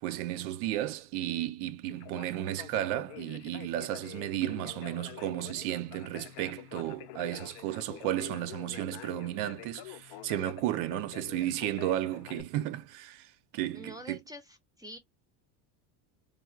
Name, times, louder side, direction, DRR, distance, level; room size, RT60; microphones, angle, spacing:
voice 1, 0.0-14.2, right 13 dB, 80° right, 0.6 m, -33 dB
Conversation, 1.9-12.4, left 14 dB, 55° left, 0.5 m, -47 dB
voice 2, 13.7-15.0, equal, 10° right, 0.6 m, -46 dB
3.3 x 2.3 x 2.3 m
supercardioid pair, 110°, 46 cm